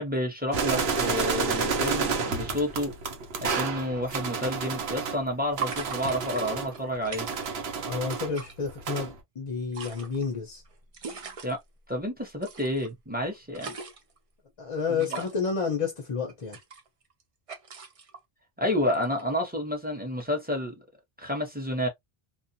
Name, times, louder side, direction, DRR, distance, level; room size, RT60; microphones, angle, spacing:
voice 1, 0.0-2.9 3.4-7.3 11.4-11.6 11.9-13.7 15.0-15.2 18.6-20.8 21.2-21.9, left 1 dB, 10° right, 0.8 m, -30 dB
sound 1, 0.5-5.2 5.6-8.3 8.6-9.2, right 4 dB, 75° right, 0.9 m, -30 dB
sound 2, 4.6-4.7 5.6-7.7 8.0-8.5 9.5-11.5 12.4-12.9 13.3-14.2 15.0-15.5 16.3-17.2 17.5-18.2 18.9-19.2, right 6 dB, 45° right, 0.5 m, -40 dB
voice 2, 7.9-10.6 14.6-16.6, left 5 dB, 40° left, 0.6 m, -30 dB
2.4 x 2.2 x 2.6 m
omnidirectional pair, 1.0 m